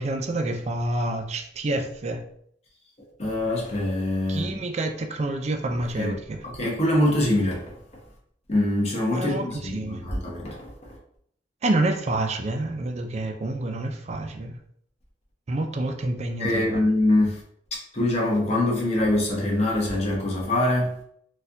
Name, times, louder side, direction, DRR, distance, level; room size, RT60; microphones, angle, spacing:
voice 1, 0.0-2.2 4.3-6.4 9.1-10.0 11.6-14.6 15.5-16.8, right 2 dB, 35° right, 0.4 m, -28 dB
voice 2, 3.2-4.6 5.9-6.2 6.4-7.7 8.5-10.7 16.4-17.4 17.7-21.0, left 1 dB, 35° left, 0.9 m, -24 dB
4.2 x 2.3 x 2.6 m
head